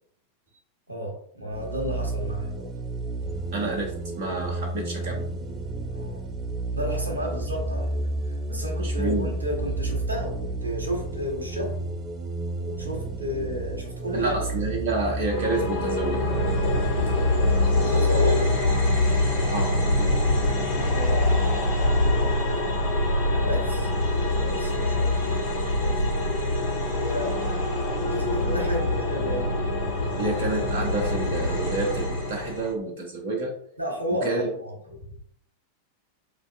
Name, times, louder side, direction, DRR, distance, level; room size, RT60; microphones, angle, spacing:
voice 1, 0.9-2.7 5.9-6.2 6.7-8.0 8.5-11.7 12.6-14.4 17.5-18.5 20.9-22.1 23.4-23.9 24.4-25.3 25.8-25.9 27.0-29.5 33.8-34.7, equal, 80° right, 0 dB, 0.9 m, -32 dB
sound 1, 1.5-18.9, right 2 dB, 25° right, 0.4 m, -32 dB
voice 2, 3.5-3.9 4.2-5.2 8.8-9.3 14.1-16.3 19.5-19.8 30.2-33.5 34.2-34.5, right 2 dB, 50° right, 0 dB, 0.7 m, -29 dB
sound 2, 15.3-32.7, left 1 dB, 55° left, 1.5 m, -24 dB
4.9 x 2.6 x 2.3 m, 0.66 s
figure-of-eight pair, 90°, 0 cm